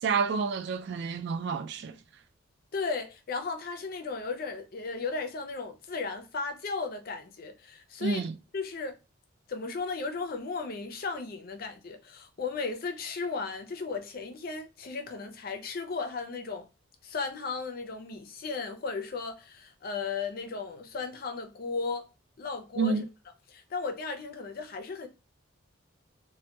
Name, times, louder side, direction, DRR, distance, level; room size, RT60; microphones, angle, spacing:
voice 1, 0.0-1.9 8.0-8.3 22.8-23.0, right 5 dB, 55° right, 0.3 m, -29 dB
voice 2, 2.7-8.2 8.5-9.0 9.5-16.7 17.0-22.1 22.4-23.0 23.5-25.1, left 4 dB, 45° left, 0.4 m, -35 dB
2.2 x 2.1 x 2.8 m
head